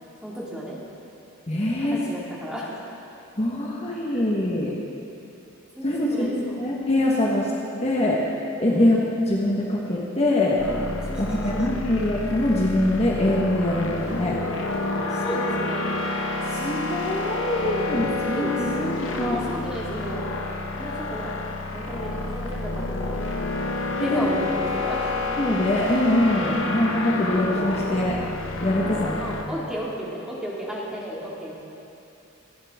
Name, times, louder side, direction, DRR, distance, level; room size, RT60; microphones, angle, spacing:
voice 1, 0.2-0.8 1.9-2.9 4.1-4.2 5.8-6.6 8.7-9.0 11.1-11.3 11.7-11.9 15.1-15.9 18.2-20.3 20.7-21.4 21.7-23.2 24.0-25.1 28.8-31.5, equal, 5° right, -5 dB, 2.1 m, -34 dB
voice 2, 1.5-2.0 3.4-4.8 5.8-6.3 6.6-7.5 7.8-8.2 8.6-9.0 9.3-10.6 11.2-14.4 16.4-19.4 24.0-24.3 25.4-28.2 28.6-29.1 29.4-29.5, left 1 dB, 30° left, -4 dB, 1.3 m, -23 dB
sound 1, 10.6-29.4, left 2 dB, 65° left, 1.0 m, -29 dB
25.5 x 9.8 x 3.6 m, 2.8 s
head